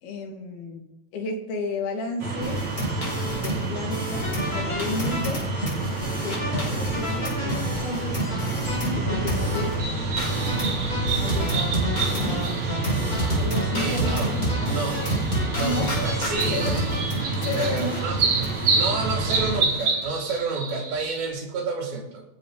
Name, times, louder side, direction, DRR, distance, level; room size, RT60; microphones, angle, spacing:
voice 1, 0.0-0.8 1.1-2.6 3.2-5.5 6.2-8.2 8.8-9.9 11.2-11.6 12.0-12.4 13.4-14.8 15.6-15.9 16.5-16.7 17.4-18.0, left 2 dB, 90° left, 2 dB, 4.3 m, -32 dB
sound 1, 2.2-19.6, right 2 dB, 35° right, 3.6 m, -29 dB
sound 2, 2.4-9.7 10.2-20.1 20.3-20.4 20.7-21.0, equal, 20° left, 4.7 m, -29 dB
sound 3, 9.8-21.3, right 4 dB, 55° right, 4.3 m, -30 dB
voice 2, 13.8-14.4 14.7-15.1 15.5-16.9 17.5-18.2 18.7-22.2, right 4 dB, 85° right, 0 dB, 4.7 m, -30 dB
27.0 x 10.5 x 4.0 m, 0.97 s
omnidirectional pair, 4.2 m